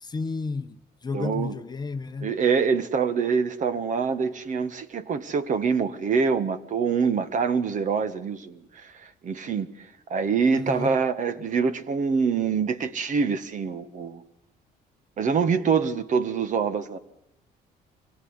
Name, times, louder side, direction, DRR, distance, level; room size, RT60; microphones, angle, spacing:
voice 1, 0.0-2.3 10.5-10.9, left 4 dB, 25° left, 0.9 m, -32 dB
voice 2, 1.1-1.5 2.2-9.7 10.1-14.2 15.2-17.0, right 5 dB, 50° right, 1.6 m, -25 dB
25.0 x 18.0 x 9.8 m
cardioid pair, 110°, 17 cm